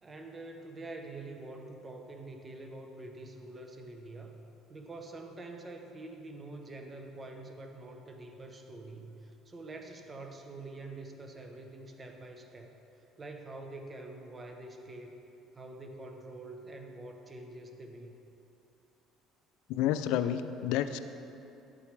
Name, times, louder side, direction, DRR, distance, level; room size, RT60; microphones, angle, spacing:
voice 1, 0.0-4.4 4.7-12.8 13.2-15.1 15.5-18.1, right 2 dB, 25° right, 4 dB, 0.9 m, -46 dB
voice 2, 19.7-21.0, left 10 dB, 80° left, 11 dB, 0.4 m, -30 dB
11.0 x 8.3 x 3.3 m, 2.8 s
cardioid pair, 105°, 0 cm